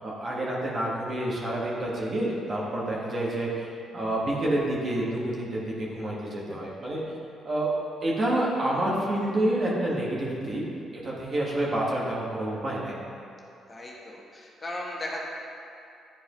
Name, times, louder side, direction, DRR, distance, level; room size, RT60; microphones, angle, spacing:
voice 1, 0.0-3.7 3.9-7.0 7.4-7.7 8.0-10.6 11.0-13.0, right 1 dB, 45° right, -5 dB, 1.6 m, -28 dB
voice 2, 13.7-15.2, left 1 dB, 30° left, -3 dB, 1.2 m, -37 dB
10.0 x 4.7 x 3.1 m, 2.6 s
cardioid pair, 90°, 0 cm